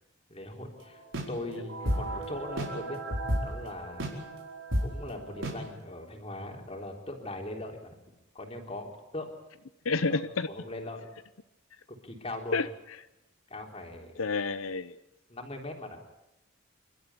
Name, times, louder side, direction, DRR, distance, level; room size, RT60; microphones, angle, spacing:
voice 1, 0.3-3.0 3.4-4.1 4.8-8.0 8.3-9.3 10.1-10.2 10.5-11.1 12.0-12.6 13.5-14.1 15.3-16.0, left 1 dB, 30° left, 2 dB, 3.6 m, -40 dB
sound 1, 1.1-5.7, right 1 dB, 70° right, 4.8 m, -33 dB
voice 2, 9.8-10.5 12.5-13.0 14.2-14.9, left 4 dB, 80° left, 12 dB, 0.7 m, -29 dB
28.0 x 13.0 x 9.6 m, 0.93 s
head